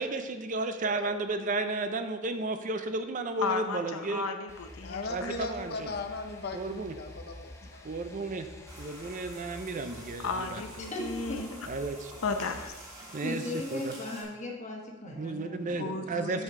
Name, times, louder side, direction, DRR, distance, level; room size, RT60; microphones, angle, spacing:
voice 1, 0.0-4.3 5.1-5.9 6.5-6.9 7.8-8.5 8.8-10.6 11.7-12.1 13.1-13.4 13.7-13.9 15.0-16.4, right 3 dB, 40° right, 8 dB, 0.5 m, -33 dB
voice 2, 3.4-5.3 10.2-11.5 12.2-12.7, left 4 dB, 90° left, 6 dB, 0.7 m, -34 dB
sound 1, 4.5-12.7, left 1 dB, 15° left, 0.7 m, -49 dB
voice 3, 4.8-7.9 15.7-16.4, left 2 dB, 50° left, 5 dB, 0.6 m, -38 dB
OM-Fr-tap, 8.6-14.2, right 1 dB, 20° right, 1.8 m, -48 dB
voice 4, 10.8-11.6 13.2-16.1, left 2 dB, 35° left, 0 dB, 1.3 m, -38 dB
7.9 x 6.5 x 3.7 m, 1.2 s
head